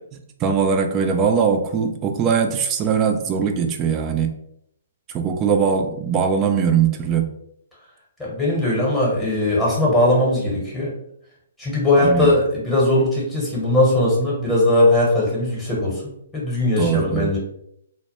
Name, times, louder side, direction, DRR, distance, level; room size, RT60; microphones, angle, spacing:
voice 1, 0.4-4.3 5.1-7.3 12.0-12.3 16.8-17.3, right 6 dB, 25° right, 5 dB, 0.3 m, -20 dB
voice 2, 8.2-10.9 11.6-17.4, left 1 dB, 10° left, -6 dB, 0.9 m, -19 dB
2.1 x 2.1 x 2.9 m, 0.73 s
figure-of-eight pair, 130°, 0 cm